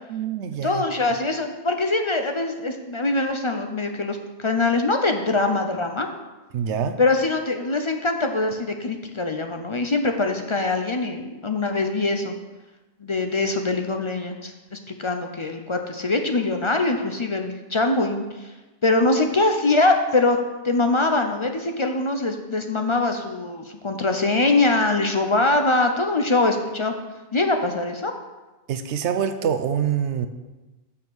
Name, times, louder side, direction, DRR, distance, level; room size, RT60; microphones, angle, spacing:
voice 1, 0.1-0.8 6.5-7.0 28.7-30.3, right 8 dB, 80° right, 9 dB, 0.9 m, -25 dB
voice 2, 0.6-6.1 7.0-12.3 13.0-18.5 18.8-20.4 20.6-26.9 27.3-28.1, left 2 dB, 40° left, 5 dB, 0.5 m, -23 dB
7.0 x 5.6 x 6.1 m, 1.2 s
omnidirectional pair, 1.2 m